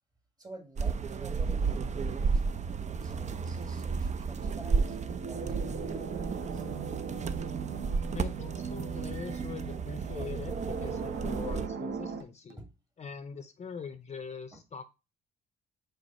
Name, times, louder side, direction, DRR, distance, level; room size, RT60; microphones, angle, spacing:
voice 1, 0.4-6.7 12.6-12.7 14.5-14.6, right 2 dB, 20° right, 5 dB, 1.8 m, -50 dB
sound 1, 0.8-11.7, right 5 dB, 40° right, 0.6 m, -33 dB
sound 2, 4.4-12.2, right 5 dB, 60° right, 1.1 m, -38 dB
sound 3, 5.9-6.0 7.4-7.5 9.2-10.8 11.3-11.8 12.2-12.7, right 6 dB, 75° right, 0.8 m, -53 dB
voice 2, 8.1-12.6 13.0-14.9, left 6 dB, 35° left, 11 dB, 0.6 m, -42 dB
5.0 x 4.0 x 5.4 m, 0.28 s
cardioid pair, 85°, 19 cm